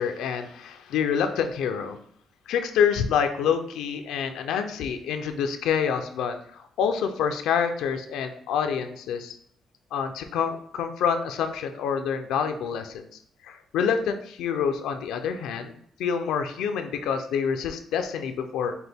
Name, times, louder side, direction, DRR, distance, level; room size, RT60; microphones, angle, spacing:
voice 1, 0.0-2.0 2.5-9.4 9.9-13.0 13.4-15.7 16.0-18.7, left 7 dB, 85° left, 7 dB, 0.4 m, -27 dB
5.9 x 2.1 x 3.4 m, 0.67 s
cardioid pair, 90°, 0 cm